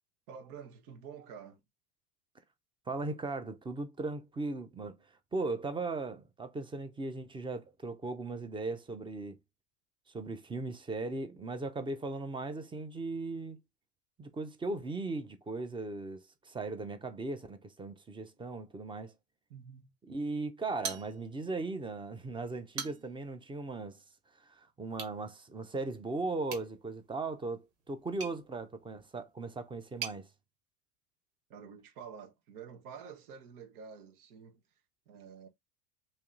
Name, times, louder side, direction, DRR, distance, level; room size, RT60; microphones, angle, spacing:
voice 1, 0.3-1.6 19.5-19.9 31.5-34.6 35.1-35.5, right 7 dB, 70° right, 1.3 m, -49 dB
voice 2, 2.9-5.0 5.3-9.4 10.1-13.6 14.2-19.1 20.1-24.0 24.4-30.3, right 3 dB, 10° right, 0.6 m, -38 dB
sound 1, 20.8-21.6 21.9-22.0 22.5-23.3 24.9-25.2 26.4-30.2, right 6 dB, 50° right, 1.6 m, -44 dB
3.1 x 2.8 x 3.7 m
hypercardioid pair, 100°, 46 cm